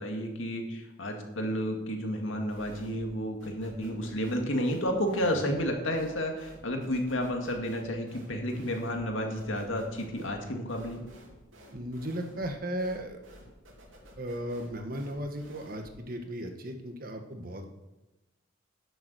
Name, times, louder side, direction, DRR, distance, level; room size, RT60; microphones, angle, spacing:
voice 1, 0.0-11.0, equal, 80° left, 2 dB, 2.1 m, -31 dB
sound 1, 2.5-3.2 3.4-16.0, equal, 85° right, 2.8 m, -52 dB
voice 2, 11.7-13.2 14.2-17.6, equal, 45° right, 5 dB, 1.3 m, -36 dB
10.5 x 7.1 x 6.8 m, 1.0 s
head